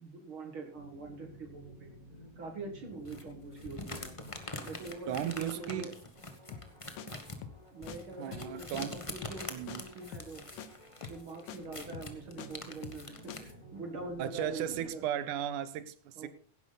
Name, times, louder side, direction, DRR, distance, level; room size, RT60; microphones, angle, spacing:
voice 1, 0.0-1.9 2.4-4.2 4.6-5.9 7.7-10.4 11.1-15.0 16.2-16.3, right 3 dB, 45° right, 4 dB, 2.3 m, -44 dB
sound 1, 0.7-14.8, right 1 dB, 10° left, 4.8 m, -55 dB
sound 2, 3.0-13.5, left 2 dB, 60° left, 0.3 m, -45 dB
voice 2, 5.1-5.9 8.2-9.0 9.5-9.8 14.2-16.3, right 10 dB, 80° right, 15 dB, 2.4 m, -36 dB
sound 3, 6.5-6.7 7.0-7.1 7.4-7.6 7.9-8.0 8.3-8.5 8.8-8.9 9.2-9.4 9.7-9.8 10.1-10.3 10.6-10.7 11.0-11.2 11.5-11.6 11.9-12.5 12.8-13.0 13.3-13.4, left 8 dB, 85° left, 2.5 m, -45 dB
17.0 x 11.0 x 4.1 m, 0.41 s
omnidirectional pair, 3.5 m